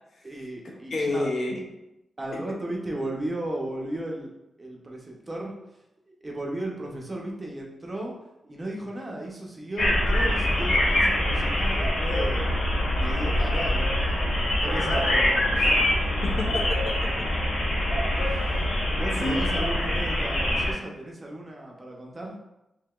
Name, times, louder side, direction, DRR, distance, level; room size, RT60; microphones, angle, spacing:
voice 1, 0.2-1.3 2.2-4.3 4.6-5.5 6.2-8.1 8.4-12.5 12.9-14.2 14.6-15.7 18.3-18.4 18.9-22.3, right 1 dB, 20° right, -1 dB, 0.6 m, -35 dB
voice 2, 0.9-1.6 16.2-17.1 19.2-19.6, left 2 dB, 50° left, -1 dB, 0.6 m, -29 dB
sound 1, 9.8-20.7, left 1 dB, 85° left, 1.0 m, -24 dB
4.7 x 2.8 x 2.3 m, 0.91 s
wide cardioid pair, 165°, 0 cm